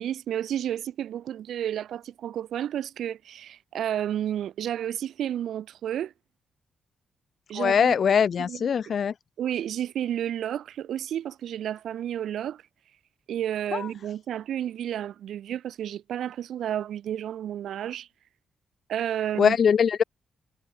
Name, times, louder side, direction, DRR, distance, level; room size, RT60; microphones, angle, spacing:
voice 1, 0.0-6.1 7.5-7.9 8.5-8.6 9.4-12.6 13.3-18.1 18.9-19.6, right 10 dB, 85° right, 1.4 m, -31 dB
voice 2, 7.5-9.1 13.7-13.9 19.4-20.0, left 7 dB, 55° left, 1.4 m, -22 dB
cardioid pair, 120°, 0 cm